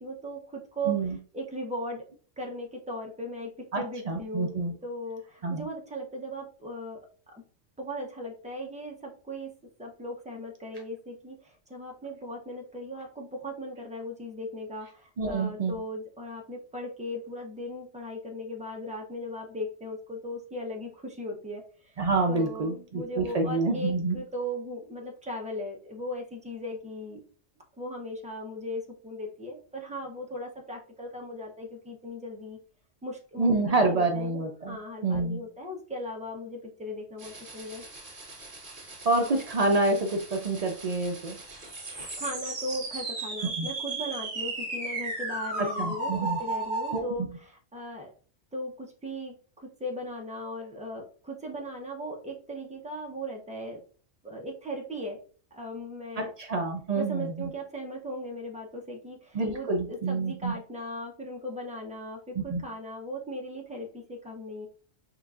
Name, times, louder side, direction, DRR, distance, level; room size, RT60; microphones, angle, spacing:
voice 1, 0.0-1.0 1.3-2.0 2.4-4.5 4.8-7.0 7.3-7.4 7.8-9.5 9.8-22.0 22.3-27.2 27.8-32.6 33.0-37.8 42.2-46.1 46.4-48.1 48.5-53.8 54.2-55.2 55.5-56.3 57.0-64.7, equal, 10° right, 0 dB, 0.6 m, -38 dB
voice 2, 0.9-1.2 3.7-4.7 5.4-5.7 15.2-15.8 22.0-24.2 33.4-34.8 35.0-35.4 39.0-41.4 43.6-43.7 45.8-46.4 46.9-47.1 56.2-57.5 59.3-60.5 62.4-62.6, right 3 dB, 90° right, 3 dB, 0.3 m, -27 dB
sound 1, 37.2-47.0, right 2 dB, 45° right, 1.4 m, -36 dB
6.3 x 2.6 x 2.4 m, 0.42 s
omnidirectional pair, 1.3 m